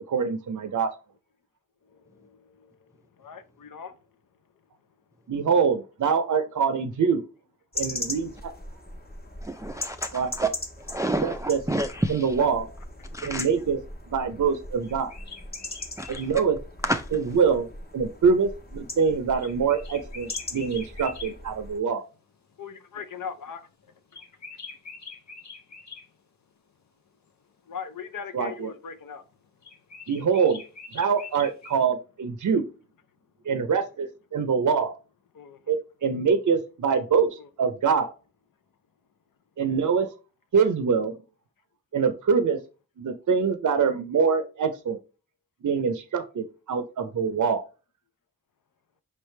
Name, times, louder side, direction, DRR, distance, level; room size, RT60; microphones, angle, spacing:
voice 1, 0.1-0.9 5.3-7.2 7.8-8.5 10.1-10.5 11.2-11.6 12.1-12.7 13.2-13.8 14.1-15.1 16.1-16.6 17.1-17.7 17.9-22.0 28.3-28.7 30.1-30.6 30.9-32.6 33.5-35.0 35.7-38.1 39.6-40.1 40.5-41.2 41.9-42.6 43.0-45.0 45.6-47.6, right 6 dB, 65° right, 0.5 m, -24 dB
voice 2, 1.9-4.0 22.6-23.6 24.1-24.2 27.7-29.2 35.3-35.6 37.4-37.5 40.6-40.7, left 6 dB, 75° left, 0.6 m, -40 dB
sound 1, 7.7-21.8, left 1 dB, 30° left, 1.1 m, -39 dB
voice 3, 9.4-10.5 10.9-12.3 13.1-13.5 16.0-16.2 16.8-17.0, right 1 dB, 10° right, 0.4 m, -29 dB
sound 2, 14.8-16.3 19.4-21.3 24.1-26.1 29.6-31.8, left 4 dB, 55° left, 1.1 m, -43 dB
5.1 x 3.2 x 3.1 m
cardioid pair, 40°, 33 cm